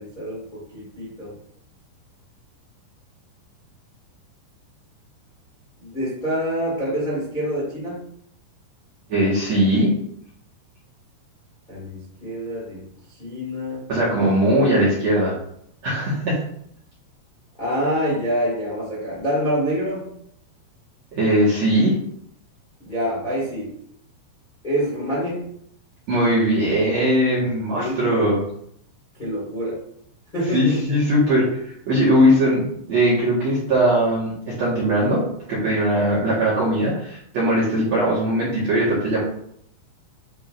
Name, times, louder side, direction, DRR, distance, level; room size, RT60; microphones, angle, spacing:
voice 1, 0.0-1.3 5.8-8.1 11.7-12.8 13.1-13.9 17.6-20.1 22.8-23.7 24.6-25.5 27.3-27.4 27.7-28.4 29.1-29.8 30.3-31.0, equal, 45° left, -6 dB, 0.6 m, -26 dB
voice 2, 9.1-9.9 13.9-15.3 15.8-16.4 21.1-21.9 26.1-28.4 30.5-35.2 35.5-39.2, equal, 55° right, -8 dB, 1.9 m, -20 dB
10.5 x 3.9 x 2.6 m, 0.70 s
omnidirectional pair, 5.5 m